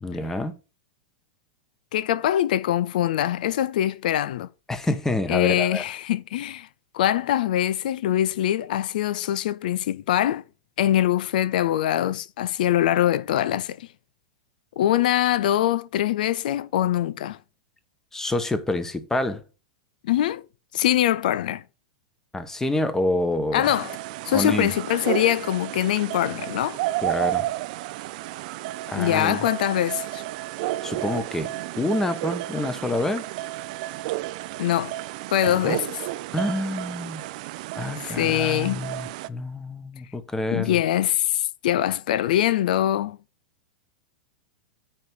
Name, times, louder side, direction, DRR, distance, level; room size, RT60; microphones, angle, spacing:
voice 1, 0.0-0.5 4.7-5.8 18.1-19.4 22.3-23.7 24.3-24.7 27.0-27.5 28.9-29.4 30.8-31.5 31.8-33.3 35.5-35.8 36.3-37.2 37.7-40.8, left 2 dB, 10° left, 1.1 m, -27 dB
voice 2, 1.9-4.5 5.3-6.7 6.9-10.4 10.8-13.9 14.8-17.4 20.0-20.4 20.7-21.6 23.5-24.0 24.2-26.8 29.0-30.2 34.6-35.0 35.3-36.0 38.0-38.8 40.5-43.2, left 12 dB, 65° left, 0.5 m, -23 dB
sound 1, 23.6-39.3, right 16 dB, 55° right, 0.5 m, -32 dB
9.1 x 3.2 x 5.4 m
hypercardioid pair, 105°, 5 cm